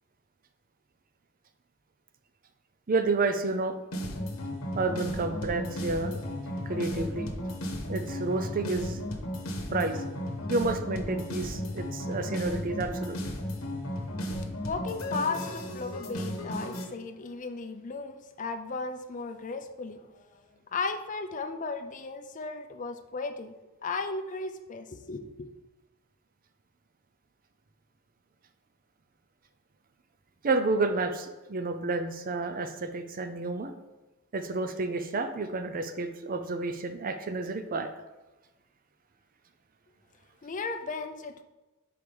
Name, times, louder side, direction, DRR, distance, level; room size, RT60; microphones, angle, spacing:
voice 1, 2.9-3.8 4.7-6.2 6.7-7.3 7.9-9.0 9.7-10.0 10.5-13.2 30.4-33.7 34.3-37.9, right 3 dB, 40° right, 8 dB, 0.5 m, -30 dB
sound 1, 3.9-16.8, equal, 70° left, 1.0 m, -34 dB
voice 2, 14.3-20.4 20.7-23.5 23.8-25.5 40.4-41.4, left 4 dB, 35° left, 7 dB, 0.5 m, -35 dB
4.9 x 4.7 x 5.3 m, 1.1 s
head